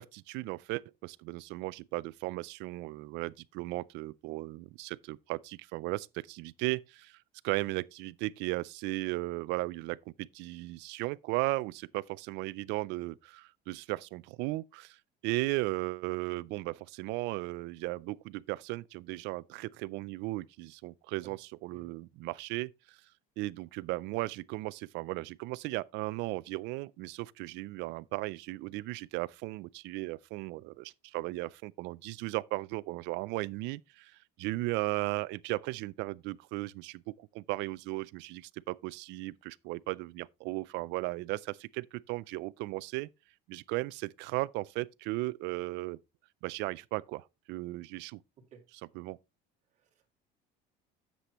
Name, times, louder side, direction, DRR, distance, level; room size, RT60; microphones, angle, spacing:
voice 1, 0.0-7.1 7.4-15.0 15.2-23.0 23.4-43.1 43.5-46.0 46.4-48.2 49.0-49.2, right 21 dB, 65° right, 0.4 m, -36 dB
voice 2, 49.7-50.1, right 7 dB, 40° right, 2.4 m, -56 dB
9.9 x 7.6 x 3.0 m
cardioid pair, 165°, 19 cm